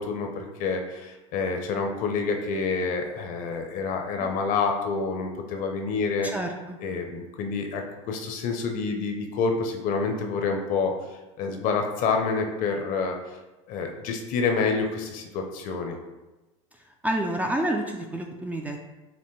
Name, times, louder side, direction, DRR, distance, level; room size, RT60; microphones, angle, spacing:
voice 1, 0.0-6.3 6.8-10.9 11.4-13.2 13.7-16.0, left 4 dB, 50° left, 4 dB, 0.7 m, -28 dB
voice 2, 6.2-6.8 17.0-18.9, right 1 dB, 10° right, 2 dB, 0.3 m, -29 dB
5.7 x 2.1 x 3.1 m, 1.1 s
supercardioid pair, 115°, 17 cm